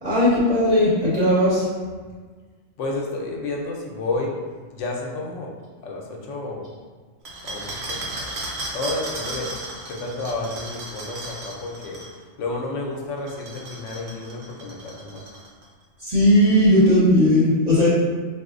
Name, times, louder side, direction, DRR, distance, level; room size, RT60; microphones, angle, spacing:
voice 1, 0.0-1.7 16.0-17.9, left 1 dB, 35° right, -9 dB, 1.0 m, -17 dB
voice 2, 2.8-4.4 4.7-5.5 5.8-6.7 7.4-8.3 8.7-9.6 9.9-12.0 12.4-15.2, left 2 dB, 80° left, -1 dB, 0.9 m, -31 dB
sound 1, 7.3-12.1 13.2-15.7, right 2 dB, 65° right, 0.8 m, -35 dB
4.0 x 2.4 x 2.5 m, 1.5 s
omnidirectional pair, 1.3 m